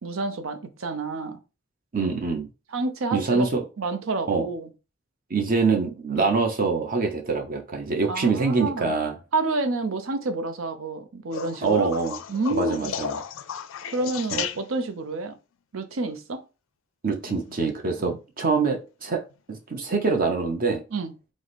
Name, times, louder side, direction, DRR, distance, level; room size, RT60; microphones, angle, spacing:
voice 1, 0.0-1.4 2.7-3.5 3.8-4.7 6.2-6.3 8.1-8.9 9.3-11.9 12.3-12.9 13.9-15.4 15.7-16.4 20.9-21.1, right 2 dB, 85° right, 0.7 m, -29 dB
voice 2, 1.9-2.5 3.1-3.6 4.3-4.5 5.3-9.1 11.6-12.2 12.5-13.2 14.3-14.4 17.0-19.2 19.5-20.8, right 4 dB, 45° right, 0.7 m, -24 dB
sound 1, 11.3-15.0 17.2-17.7 19.3-19.4, left 8 dB, 75° left, 0.4 m, -34 dB
4.8 x 2.1 x 4.0 m
head